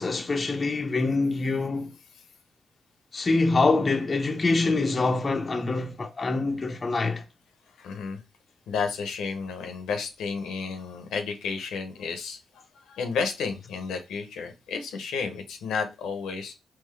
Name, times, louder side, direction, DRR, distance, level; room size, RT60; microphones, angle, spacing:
voice 1, 0.0-1.9 3.1-7.2, left 3 dB, 40° left, 0.5 m, -25 dB
voice 2, 7.8-8.2 8.7-16.5, left 5 dB, 85° left, 0.6 m, -32 dB
3.7 x 3.0 x 3.1 m
supercardioid pair, 50°, 0 cm